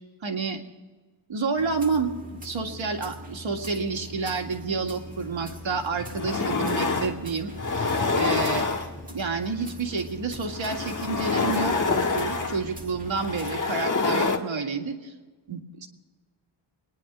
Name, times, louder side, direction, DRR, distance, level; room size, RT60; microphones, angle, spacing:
voice 1, 0.2-0.6 1.3-8.7 9.1-11.8 12.1-15.1 15.5-15.9, right 4 dB, 75° right, 2 dB, 2.0 m, -29 dB
sound 1, 1.6-13.6, left 1 dB, 15° right, 1.7 m, -42 dB
sound 2, 5.5-5.6 6.0-7.2 7.5-9.2 10.3-14.4, left 4 dB, 40° left, 1.6 m, -26 dB
24.5 x 10.5 x 4.8 m, 1.3 s
wide cardioid pair, 170°, 47 cm